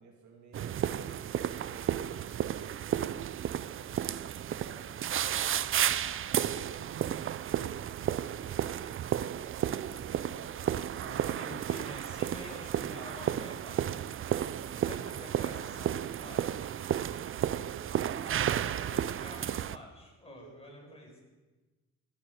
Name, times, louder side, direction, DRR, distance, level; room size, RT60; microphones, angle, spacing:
voice 1, 0.0-2.1 2.7-6.0 6.3-6.5 9.4-11.2 20.3-21.2, right 4 dB, 70° right, 0 dB, 2.5 m, -55 dB
sound 1, 0.5-19.8, right 10 dB, 45° right, 0.5 m, -33 dB
voice 2, 11.0-14.1 14.7-16.7 18.1-21.1, left 2 dB, 20° left, 0 dB, 4.9 m, -49 dB
16.5 x 11.5 x 4.8 m, 1.2 s
cardioid pair, 90°, 30 cm